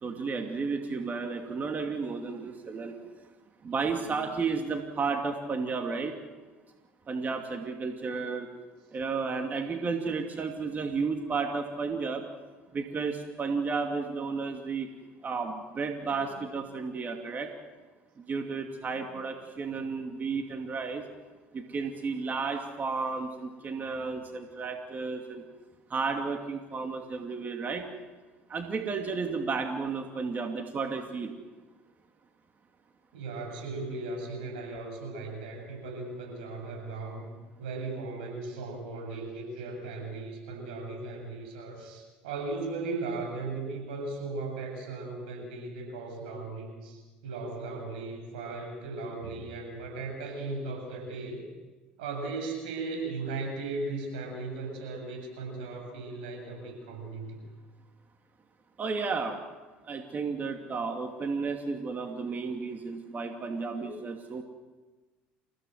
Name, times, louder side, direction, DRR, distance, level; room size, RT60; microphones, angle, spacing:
voice 1, 0.0-2.9 3.6-6.1 7.1-8.5 8.9-12.3 12.7-14.9 15.2-17.5 18.2-21.0 21.5-25.4 25.9-27.9 28.5-31.3 58.8-59.4 59.8-64.4, right 4 dB, 35° right, 4 dB, 2.5 m, -32 dB
voice 2, 3.7-4.2 16.0-16.5 18.9-19.2 19.7-19.8 33.1-37.3 37.6-51.4 52.0-57.4 63.8-63.9, right 3 dB, 85° right, 2 dB, 7.9 m, -37 dB
28.5 x 16.5 x 8.0 m, 1.3 s
hypercardioid pair, 75°, 5 cm